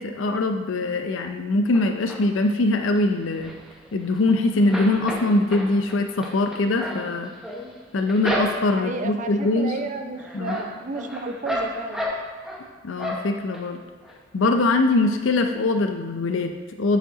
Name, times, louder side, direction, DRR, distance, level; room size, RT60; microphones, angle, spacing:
voice 1, 0.0-3.5 3.9-7.3 7.9-9.8 10.3-10.6 12.8-13.8 14.3-17.0, left 2 dB, 85° left, 5 dB, 0.5 m, -22 dB
sound 1, 1.7-2.5 2.9-4.3 4.5-8.9 9.4-9.9 10.2-12.6 13.0-13.6 14.0-14.1 14.4-14.5, equal, 5° right, 0.9 m, -32 dB
voice 2, 8.7-12.0, right 3 dB, 40° right, 6 dB, 0.5 m, -32 dB
9.1 x 5.0 x 3.8 m, 1.4 s
head